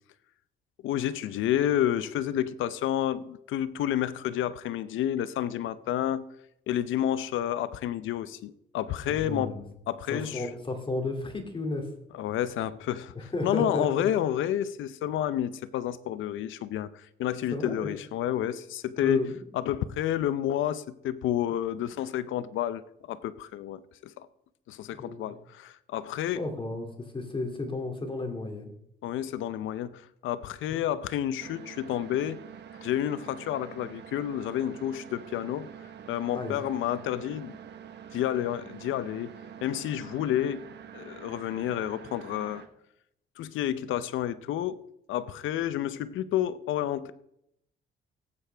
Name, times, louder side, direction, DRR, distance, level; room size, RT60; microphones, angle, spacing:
voice 1, 0.8-6.3 6.7-9.6 9.9-10.5 12.2-19.3 19.5-24.3 24.7-26.4 29.0-32.4 32.8-35.7 36.1-37.6 38.1-39.3 39.6-40.7 40.9-42.6 43.4-44.8 45.1-47.1, left 11 dB, 80° left, 0.6 m, -30 dB
voice 2, 9.0-9.6 10.1-11.9 13.1-14.1 17.5-17.8 19.0-19.3 25.0-25.3 26.3-28.7 30.7-30.8 36.3-36.6, left 2 dB, 25° left, 2.5 m, -33 dB
sound 1, 31.4-42.7, right 8 dB, 60° right, 1.2 m, -46 dB
18.0 x 8.4 x 3.4 m
cardioid pair, 90°, 20 cm